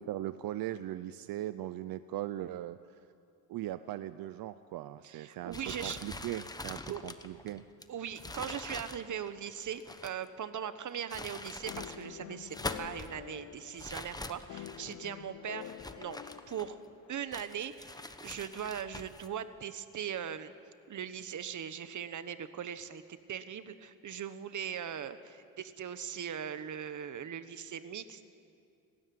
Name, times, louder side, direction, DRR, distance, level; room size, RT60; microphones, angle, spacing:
voice 1, 0.0-2.8 3.5-7.6, right 13 dB, 90° right, 13 dB, 0.6 m, -39 dB
voice 2, 5.0-6.0 6.9-7.0 7.9-16.2 16.5-16.8 17.1-20.5 20.9-28.3, right 8 dB, 60° right, 12 dB, 1.3 m, -40 dB
sound 1, 5.5-10.3 10.9-12.0 12.4-13.1 13.8-15.0 15.6-16.9 17.3-19.3, left 2 dB, 10° left, 1.1 m, -44 dB
sound 2, 11.7-17.3, left 12 dB, 60° left, 0.6 m, -48 dB
29.5 x 13.5 x 9.5 m, 2.5 s
cardioid pair, 105°, 34 cm